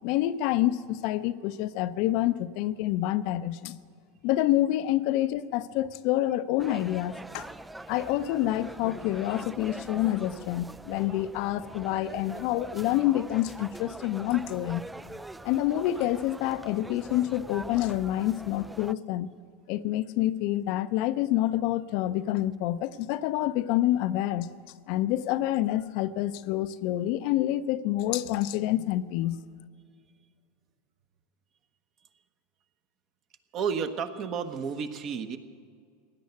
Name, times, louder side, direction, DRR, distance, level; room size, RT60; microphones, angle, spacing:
voice 1, 0.0-3.8 4.2-7.5 7.9-14.8 15.4-19.3 19.7-24.5 24.9-29.4, left 14 dB, 60° left, 12 dB, 0.6 m, -27 dB
sound 1, 6.6-18.9, right 2 dB, 5° right, 0.3 m, -43 dB
voice 2, 33.5-35.4, right 6 dB, 45° right, 8 dB, 1.2 m, -32 dB
17.0 x 10.5 x 8.1 m, 2.1 s
hypercardioid pair, 100°, 0 cm